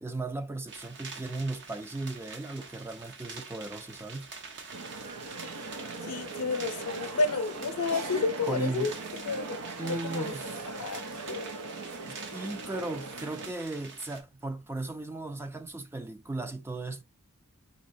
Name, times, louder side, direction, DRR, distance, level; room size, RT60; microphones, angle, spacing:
voice 1, 0.0-4.3 8.5-9.0 9.8-10.6 12.1-17.0, right 2 dB, 10° right, 0.4 m, -36 dB
sound 1, 0.7-14.2, right 4 dB, 55° right, 0.9 m, -46 dB
sound 2, 4.7-13.5, right 3 dB, 90° right, 0.6 m, -40 dB
voice 2, 6.1-8.9 9.3-10.3 10.8-11.0 11.3-11.5, left 3 dB, 85° left, 0.7 m, -31 dB
4.1 x 4.0 x 2.6 m
head